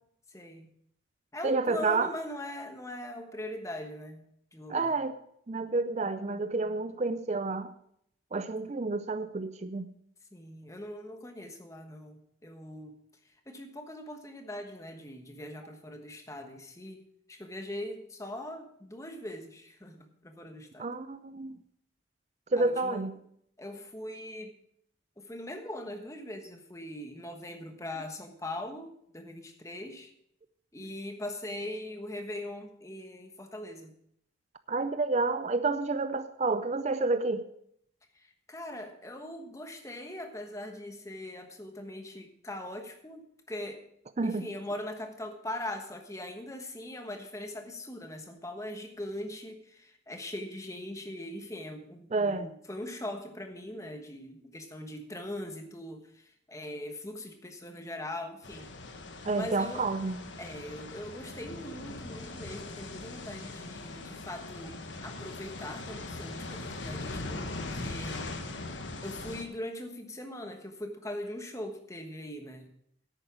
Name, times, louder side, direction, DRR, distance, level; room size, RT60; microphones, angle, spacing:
voice 1, 0.3-0.7 1.3-4.2 4.5-5.0 10.3-12.9 13.5-20.9 22.6-23.2 23.6-24.5 25.2-30.1 30.7-33.9 38.1-43.8 44.2-58.7 59.3-59.9 60.4-68.3 69.0-72.7, left 1 dB, 15° left, 1.2 m, -41 dB
voice 2, 1.4-2.1 4.7-5.2 5.5-7.7 8.3-9.9 20.8-21.6 22.5-23.1 34.7-37.5 44.2-44.5 52.1-52.5 59.2-60.2, right 3 dB, 35° right, 0.4 m, -29 dB
sound 1, 58.4-69.4, left 2 dB, 70° left, 1.3 m, -40 dB
10.5 x 9.0 x 6.1 m
head